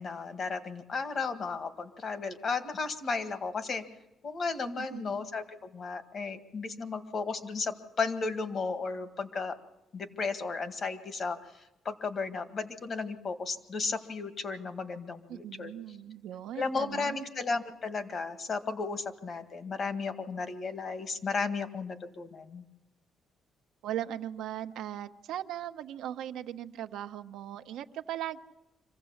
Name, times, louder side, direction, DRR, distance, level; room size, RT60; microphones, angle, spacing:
voice 1, 0.0-3.8 4.2-9.6 9.9-11.4 11.9-15.7 16.6-22.6, left 4 dB, 50° left, 9 dB, 1.8 m, -34 dB
voice 2, 15.3-17.2 23.8-28.4, right 11 dB, 85° right, 8 dB, 0.8 m, -38 dB
25.5 x 15.5 x 7.2 m, 0.95 s
cardioid pair, 90°, 0 cm